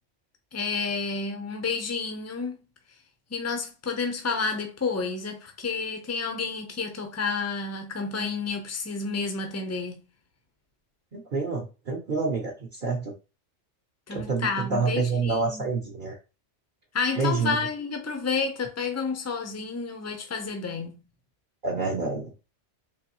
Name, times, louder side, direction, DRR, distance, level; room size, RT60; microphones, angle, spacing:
voice 1, 0.5-2.6 3.3-10.0 14.1-15.7 16.9-21.0, left 4 dB, 20° left, 0.5 m, -30 dB
voice 2, 11.1-13.1 14.1-16.2 17.2-17.6 21.6-22.3, right 4 dB, 50° right, 0.8 m, -28 dB
3.8 x 3.0 x 3.0 m
omnidirectional pair, 1.3 m